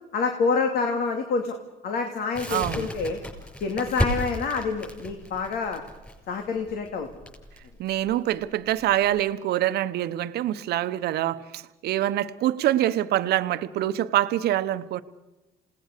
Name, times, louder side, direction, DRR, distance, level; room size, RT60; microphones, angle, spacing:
voice 1, 0.1-1.6 1.8-3.2 3.6-5.8 6.3-7.1, left 4 dB, 65° left, 5 dB, 2.5 m, -27 dB
Crackle, 2.3-9.2, left 1 dB, 10° left, 6.9 m, -33 dB
voice 2, 2.5-2.9 7.8-15.0, right 13 dB, 70° right, 13 dB, 1.0 m, -25 dB
28.0 x 18.5 x 6.7 m, 1.1 s
cardioid pair, 110°, 17 cm